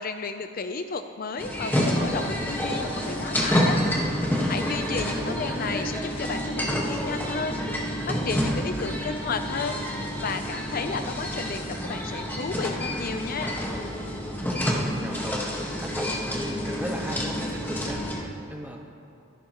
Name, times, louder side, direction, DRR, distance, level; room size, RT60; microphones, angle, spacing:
voice 1, 0.0-3.8 4.5-9.8 10.2-13.6, left 4 dB, 45° left, 8 dB, 0.5 m, -33 dB
sound 1, 1.4-18.2, equal, 10° left, 1.5 m, -28 dB
voice 2, 4.6-5.6 10.8-11.2 14.5-18.8, equal, 10° right, 0 dB, 1.4 m, -37 dB
24.5 x 11.0 x 3.0 m, 2.5 s
head